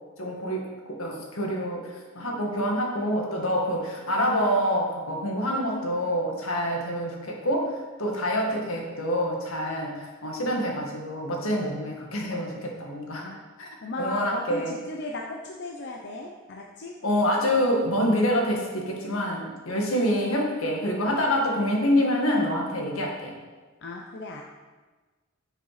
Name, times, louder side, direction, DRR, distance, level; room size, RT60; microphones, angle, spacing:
voice 1, 0.2-0.6 0.9-13.3 13.6-13.7 14.0-14.8 17.0-23.3, equal, 80° left, 0 dB, 2.0 m, -26 dB
voice 2, 13.8-17.0 23.8-24.4, left 2 dB, 55° left, 1 dB, 0.8 m, -36 dB
9.7 x 6.7 x 5.0 m, 1.3 s
head